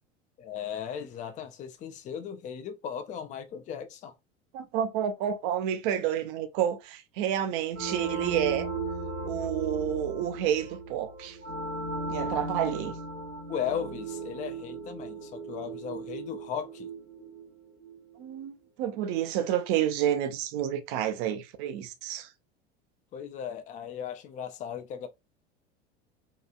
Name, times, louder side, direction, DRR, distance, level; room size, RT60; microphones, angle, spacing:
voice 1, 0.4-4.1 13.5-16.9 23.1-25.1, left 8 dB, 25° left, 0.4 m, -37 dB
voice 2, 4.5-8.7 9.2-11.4 12.1-13.0 18.2-22.3, right 10 dB, 50° right, 0.5 m, -29 dB
sound 1, 7.7-18.2, right 3 dB, 90° right, 1.0 m, -36 dB
2.8 x 2.3 x 2.3 m
figure-of-eight pair, 75°, 34 cm